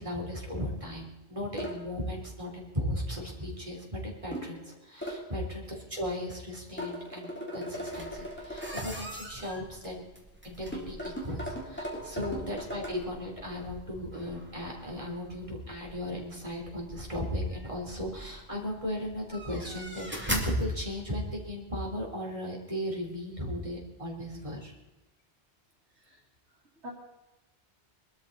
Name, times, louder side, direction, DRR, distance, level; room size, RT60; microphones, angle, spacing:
voice 1, 0.0-10.1 10.4-24.7, left 1 dB, 30° right, -1 dB, 3.8 m, -36 dB
sound 1, 1.6-1.8 4.3-4.6 5.0-5.2 6.8-8.9 10.7-12.9, equal, 10° left, 3.6 m, -38 dB
sound 2, 7.8-21.5, right 1 dB, 10° right, 2.5 m, -43 dB
voice 2, 25.9-26.2 26.8-26.9, equal, 85° right, -4 dB, 2.8 m, -47 dB
23.0 x 13.0 x 4.2 m, 1.1 s
omnidirectional pair, 1.1 m